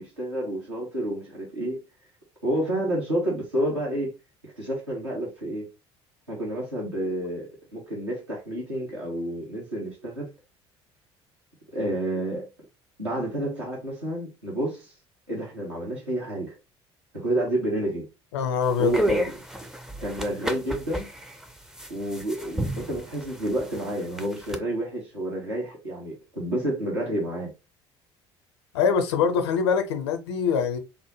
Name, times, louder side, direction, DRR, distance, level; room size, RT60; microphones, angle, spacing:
voice 1, 0.0-1.8 2.4-4.1 4.4-5.6 6.3-10.3 11.7-12.5 13.0-14.9 15.3-16.5 17.1-18.0 18.8-19.2 20.0-21.1 21.9-27.5, right 1 dB, 85° right, 1.1 m, -29 dB
voice 2, 18.3-18.9 28.7-30.8, left 6 dB, 65° left, 0.6 m, -23 dB
sound 1, 18.6-24.6, equal, 5° right, 0.5 m, -32 dB
3.6 x 2.1 x 3.0 m
figure-of-eight pair, 55°, 14 cm